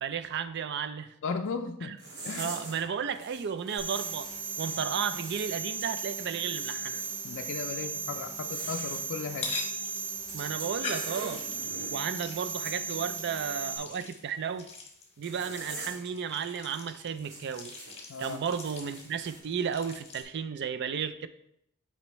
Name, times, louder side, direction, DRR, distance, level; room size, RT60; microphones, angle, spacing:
voice 1, 0.0-1.1 1.8-2.0 2.4-4.3 4.6-7.0 10.3-11.4 11.9-14.7 15.2-17.8 18.2-21.3, right 7 dB, 50° right, 0.4 m, -33 dB
voice 2, 1.2-1.9 2.2-2.5 7.2-9.5 18.1-18.4, left 5 dB, 55° left, 0.4 m, -36 dB
sound 1, 2.0-2.8 3.1-7.2 8.3-9.0 10.2-12.0 12.5-12.8 15.2-16.1 16.4-16.6 17.2-19.4, right 2 dB, 85° right, 2.4 m, -44 dB
sound 2, 3.8-13.8, right 5 dB, 65° right, 2.4 m, -36 dB
sound 3, 9.3-20.2, left 4 dB, 30° left, 1.2 m, -44 dB
8.6 x 4.3 x 3.1 m
head